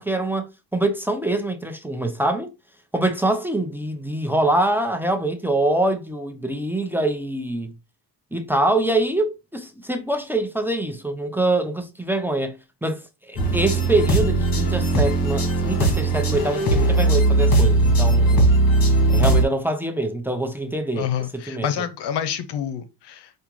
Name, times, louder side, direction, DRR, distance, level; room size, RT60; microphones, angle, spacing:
voice 1, 0.0-2.5 2.9-7.7 8.3-12.6 12.8-13.0 13.3-18.5 19.1-21.1 21.3-21.7, right 1 dB, 5° right, 0.7 m, -24 dB
sound 1, 13.4-19.4, right 2 dB, 55° left, 1.5 m, -18 dB
voice 2, 21.0-23.3, left 9 dB, 75° left, 0.7 m, -28 dB
5.0 x 2.3 x 3.0 m
cardioid pair, 75°, 42 cm